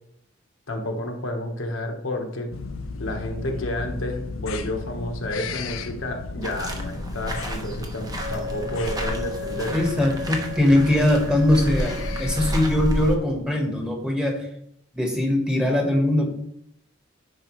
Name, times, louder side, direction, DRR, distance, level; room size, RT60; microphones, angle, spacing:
voice 1, 0.7-2.5 3.0-9.8, left 1 dB, 70° left, 2 dB, 1.2 m, -30 dB
sound 1, 2.5-13.1, left 3 dB, 85° left, 0.6 m, -35 dB
sound 2, 6.4-13.2, equal, 20° right, 1.0 m, -31 dB
Wind instrument woodwind instrument, 8.1-12.8, left 3 dB, 75° right, 3.1 m, -36 dB
voice 2, 9.7-14.5 14.9-16.3, left 1 dB, 5° right, 1 dB, 1.3 m, -21 dB
9.8 x 4.6 x 3.1 m, 0.72 s
head